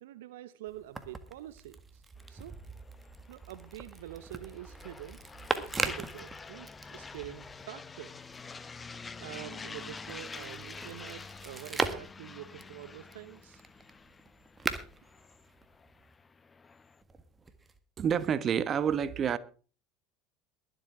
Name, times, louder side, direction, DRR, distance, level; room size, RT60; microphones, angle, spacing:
voice 1, 0.0-2.6 3.3-5.2 5.5-8.2 8.8-8.9 9.2-13.6, right 13 dB, 70° right, 0.6 m, -46 dB
sound 1, 0.7-7.7 8.0-16.1 17.0-17.8, right 3 dB, 20° right, 1.7 m, -40 dB
sound 2, 2.2-17.0, left 4 dB, 25° left, 0.8 m, -48 dB
voice 2, 18.0-19.4, right 8 dB, 40° right, 1.0 m, -28 dB
22.5 x 7.9 x 3.7 m
hypercardioid pair, 70°, 0 cm